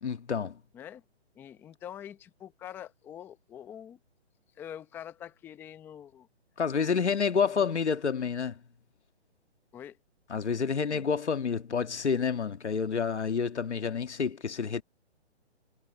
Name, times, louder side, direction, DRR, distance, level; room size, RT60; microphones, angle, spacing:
voice 1, 0.0-0.6 6.6-8.6 10.3-14.8, left 6 dB, 85° left, 1.9 m, -29 dB
voice 2, 1.4-4.0 4.6-6.3 7.0-7.2 7.4-7.8 9.7-10.0 10.9-11.1, left 10 dB, 5° left, 0.7 m, -45 dB
hypercardioid pair, 155°, 33 cm